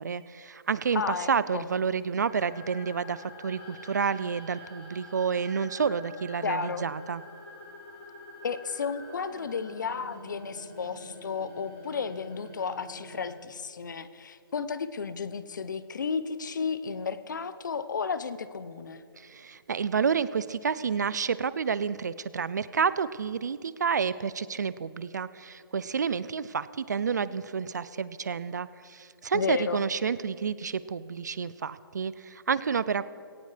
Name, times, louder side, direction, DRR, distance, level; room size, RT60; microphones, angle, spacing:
voice 1, 0.0-7.2 19.2-33.1, right 6 dB, 45° right, 17 dB, 0.4 m, -29 dB
voice 2, 0.9-1.7 6.4-6.9 8.4-19.0 29.3-29.8, left 5 dB, 50° left, 14 dB, 0.7 m, -33 dB
sound 1, 2.2-13.3, left 1 dB, 20° left, 4.6 m, -47 dB
19.5 x 17.5 x 3.3 m, 2.4 s
hypercardioid pair, 175°, 13 cm